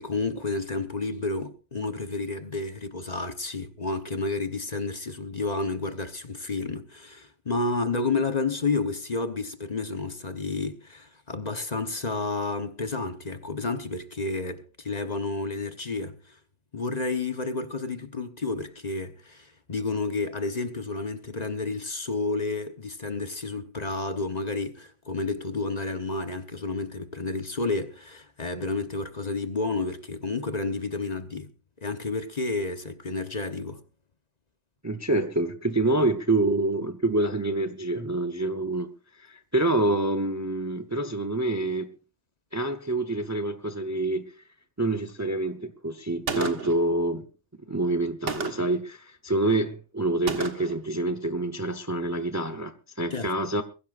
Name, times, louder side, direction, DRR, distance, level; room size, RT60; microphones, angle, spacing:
voice 1, 0.0-16.4 16.7-31.5 31.8-33.8 53.1-53.3, left 3 dB, 35° left, 1.1 m, -30 dB
voice 2, 34.8-38.9 39.2-41.9 42.5-44.3 44.8-47.2 47.7-53.6, right 2 dB, 15° right, 0.7 m, -27 dB
Gunshot gunfire, 46.3-46.9 48.3-48.8 50.3-50.8, right 5 dB, 70° right, 1.9 m, -32 dB
22.0 x 16.0 x 2.5 m
omnidirectional pair, 1.3 m